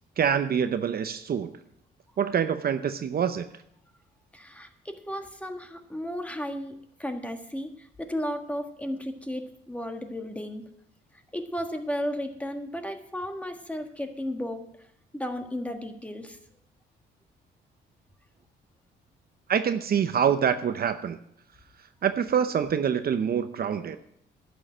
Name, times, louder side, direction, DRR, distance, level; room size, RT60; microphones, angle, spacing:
voice 1, 0.2-1.5 2.2-3.5 19.5-21.2 22.0-24.0, right 8 dB, 50° right, 10 dB, 0.7 m, -25 dB
voice 2, 4.3-6.7 7.0-10.6 11.3-14.6 15.1-16.4, equal, 5° left, 5 dB, 1.5 m, -34 dB
11.0 x 6.5 x 9.0 m, 0.74 s
cardioid pair, 90°, 20 cm